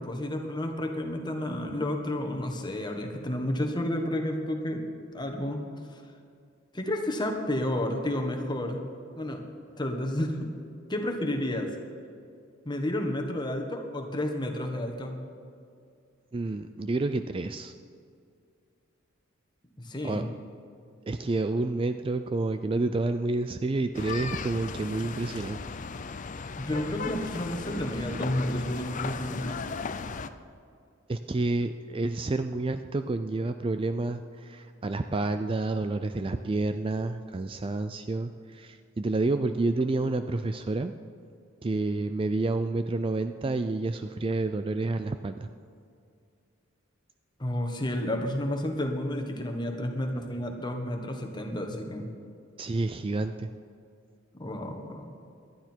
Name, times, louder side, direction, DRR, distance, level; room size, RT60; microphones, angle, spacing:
voice 1, 0.0-4.8 5.1-5.6 5.9-6.0 6.7-8.8 9.1-9.4 9.8-10.5 10.9-11.7 12.6-15.2 19.8-20.3 26.6-29.6 47.4-52.1 54.4-55.1, left 1 dB, 20° left, 3 dB, 1.4 m, -31 dB
voice 2, 16.3-17.7 20.0-20.2 21.1-25.6 31.1-40.9 41.6-45.5 52.6-53.5, right 2 dB, 25° right, 9 dB, 0.3 m, -29 dB
sound 1, 23.9-30.3, left 4 dB, 35° left, 0.5 m, -36 dB
19.0 x 11.5 x 4.5 m, 2.4 s
head